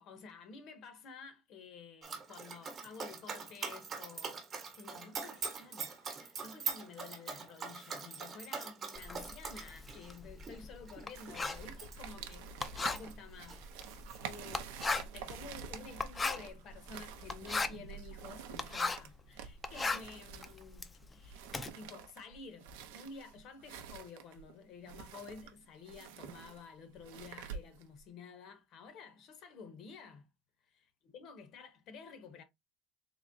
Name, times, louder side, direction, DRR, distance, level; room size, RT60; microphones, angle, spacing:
voice 1, 0.0-21.5 21.7-30.3 30.7-32.4, left 5 dB, 45° left, 0.7 m, -52 dB
Dog, 2.0-13.1 13.4-14.5, right 5 dB, 30° right, 1.0 m, -43 dB
Writing, 8.9-19.2 19.5-21.7, left 3 dB, 15° left, 0.4 m, -38 dB
sound 1, 11.1-28.0, right 8 dB, 85° right, 0.6 m, -49 dB
3.6 x 3.1 x 2.6 m
cardioid pair, 150°, 0 cm